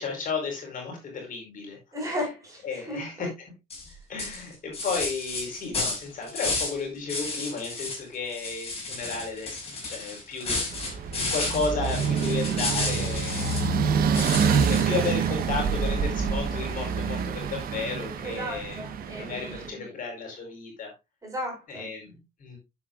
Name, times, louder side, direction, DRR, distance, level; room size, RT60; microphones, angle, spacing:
voice 1, 0.0-1.8 2.6-3.3 4.1-10.6 11.1-13.6 13.9-18.8 19.1-20.9 21.7-22.6, left 4 dB, 50° left, 4.7 m, -33 dB
voice 2, 1.9-3.3 18.2-19.9 21.2-21.9, equal, 20° right, 5.8 m, -35 dB
sound 1, 3.7-3.9 4.2-6.8 7.1-8.0 8.3-13.7 14.1-15.1, left 3 dB, 35° left, 5.8 m, -32 dB
sound 2, 10.7-19.7, right 6 dB, 60° right, 1.4 m, -27 dB
9.9 x 7.9 x 2.5 m
cardioid pair, 110°, 17 cm